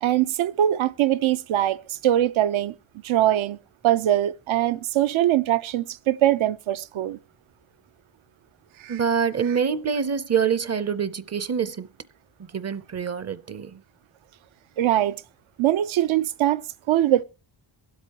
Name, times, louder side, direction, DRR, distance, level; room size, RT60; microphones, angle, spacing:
voice 1, 0.0-2.7 3.0-3.6 3.8-7.2 8.8-9.0 14.8-15.2 15.6-17.2, right 12 dB, 85° right, 0.8 m, -22 dB
voice 2, 8.9-11.9 12.5-13.8, right 7 dB, 35° right, 0.6 m, -25 dB
23.0 x 8.1 x 2.9 m
wide cardioid pair, 145°, 47 cm